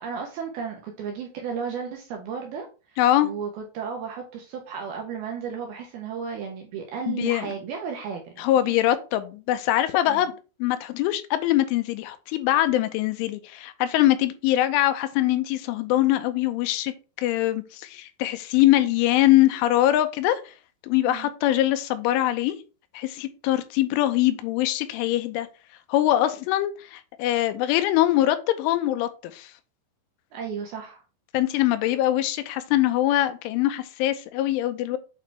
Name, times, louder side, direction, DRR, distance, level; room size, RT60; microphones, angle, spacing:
voice 1, 0.0-8.7 10.1-10.3 21.1-21.3 30.3-31.0, right 6 dB, 75° right, 2.4 m, -34 dB
voice 2, 3.0-3.3 7.1-7.5 8.4-10.3 10.6-20.4 20.8-22.6 22.9-25.5 25.9-29.5 31.3-35.0, left 14 dB, 85° left, 3.2 m, -23 dB
8.6 x 4.9 x 3.3 m
omnidirectional pair, 5.6 m